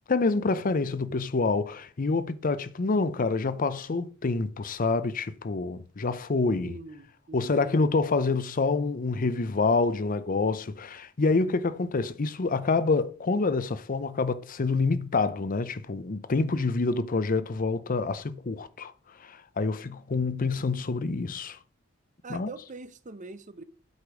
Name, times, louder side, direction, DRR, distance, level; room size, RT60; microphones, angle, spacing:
voice 1, 0.1-6.7 7.3-18.9 19.2-21.6 22.3-22.5, left 3 dB, 40° left, 0.6 m, -27 dB
voice 2, 6.6-7.9 22.2-23.6, right 3 dB, 40° right, 0.7 m, -43 dB
8.2 x 5.1 x 6.0 m
head